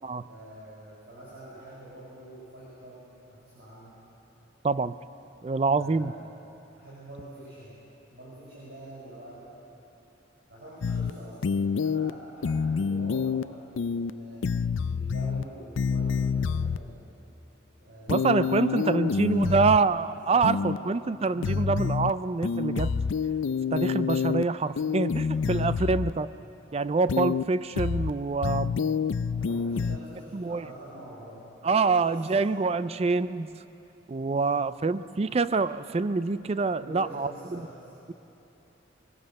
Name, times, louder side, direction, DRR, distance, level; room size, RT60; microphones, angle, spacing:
voice 1, 0.2-4.0 5.7-6.3 6.8-7.8 8.1-9.6 10.5-14.5 14.9-17.0 17.8-19.7 20.2-20.9 21.3-21.6 25.0-25.5 29.3-32.4 34.3-34.6 36.7-37.9, right 1 dB, 60° right, -9 dB, 6.1 m, -46 dB
voice 2, 4.6-5.0 5.4-6.1 18.1-22.9 23.7-26.3 26.7-28.8 30.3-30.6 31.6-33.5 34.1-37.6, right 4 dB, 30° right, 14 dB, 0.4 m, -26 dB
sound 1, 10.8-11.1 11.4-12.1 12.4-13.4 13.8-14.1 14.4-15.4 15.8-16.8 18.1-19.8 20.4-20.8 21.4-22.1 22.4-24.4 24.8-26.1 27.1-27.4 27.8-28.1 28.4-30.0, left 5 dB, 80° left, 0.4 m, -27 dB
22.5 x 20.0 x 7.7 m, 2.9 s
head